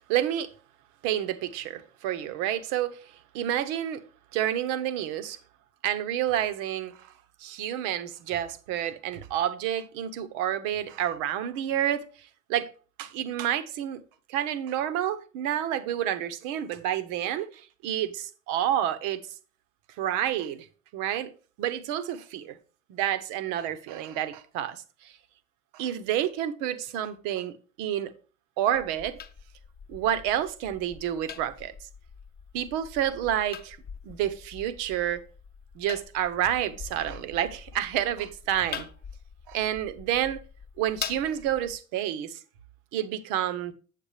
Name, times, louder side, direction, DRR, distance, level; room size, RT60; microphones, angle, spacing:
voice 1, 0.1-0.5 1.0-4.0 4.3-5.4 5.8-7.1 7.4-12.7 13.0-14.0 14.3-19.2 20.0-20.7 20.9-21.3 21.6-22.6 22.9-25.1 25.7-28.1 28.6-29.2 29.9-31.7 32.5-33.8 34.0-35.2 35.7-38.9 39.5-40.4 40.8-42.4 42.9-43.7, right 11 dB, 50° right, 1.0 m, -29 dB
sound 1, 28.7-41.7, left 7 dB, 25° left, 0.9 m, -44 dB
8.0 x 7.6 x 3.2 m
figure-of-eight pair, 70°, 39 cm